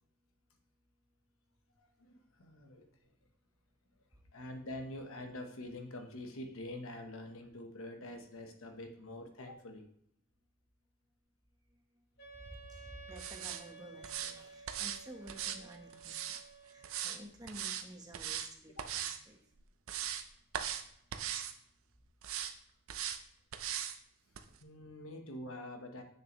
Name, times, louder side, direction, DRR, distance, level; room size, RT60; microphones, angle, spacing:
voice 1, 1.8-3.3 4.0-4.1 4.3-9.9 18.8-18.9 24.6-26.0, left 1 dB, 70° left, 5 dB, 1.1 m, -46 dB
voice 2, 11.7-12.0 12.3-19.5, right 1 dB, 15° right, 2 dB, 1.0 m, -52 dB
Wind instrument woodwind instrument, 12.2-17.2, right 4 dB, 50° left, 2.1 m, -54 dB
sound 1, 13.2-13.6 14.0-14.3 14.7-15.0 15.3-16.4 16.8-17.2 17.5-17.8 18.1-18.5 18.8-19.2 19.6-20.2 20.5-20.8 21.1-21.5 22.2-22.5 22.9-23.2 23.5-24.0 24.3-24.4, right 9 dB, 70° right, 0.6 m, -39 dB
7.5 x 6.4 x 3.1 m, 0.72 s
head